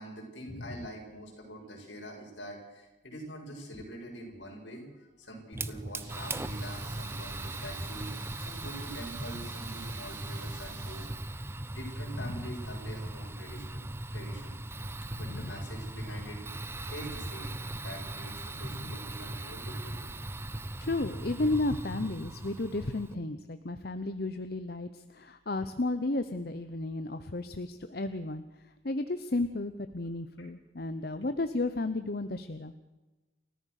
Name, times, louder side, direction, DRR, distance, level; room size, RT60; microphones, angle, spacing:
voice 1, 0.0-13.9 14.1-14.6 14.8-16.4 16.9-20.1 30.4-30.5, equal, 75° left, 0 dB, 6.9 m, -45 dB
Fire, 5.5-23.1, right 2 dB, 15° right, 0.7 m, -39 dB
sound 1, 6.0-11.1, right 3 dB, 85° right, 6.4 m, -50 dB
voice 2, 15.2-15.5 18.7-19.0 20.8-28.4 28.8-32.7, left 2 dB, 55° left, 10 dB, 0.9 m, -33 dB
29.5 x 14.0 x 6.6 m, 1.1 s
head